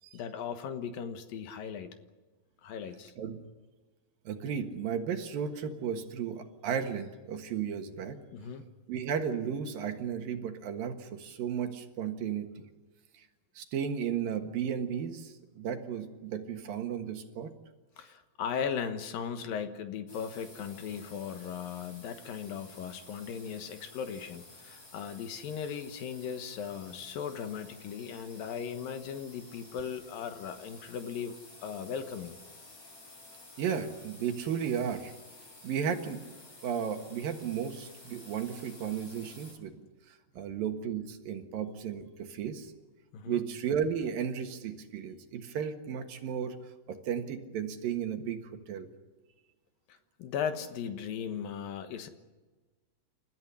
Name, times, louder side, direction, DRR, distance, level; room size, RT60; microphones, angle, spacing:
voice 1, 0.1-1.9 2.6-3.1 8.3-8.6 18.0-31.4 31.6-32.4 43.1-43.4 49.9-52.1, left 7 dB, 70° left, 8 dB, 3.0 m, -37 dB
voice 2, 4.3-8.2 8.9-12.5 13.2-13.3 13.6-17.5 33.6-35.1 35.6-36.4 36.6-39.8 40.1-42.7 43.3-46.5 46.9-48.4 48.7-48.9, right 8 dB, 70° right, 6 dB, 3.2 m, -34 dB
sound 1, 20.1-39.5, left 2 dB, 40° left, 6.3 m, -53 dB
29.0 x 14.0 x 10.0 m, 1.2 s
omnidirectional pair, 4.4 m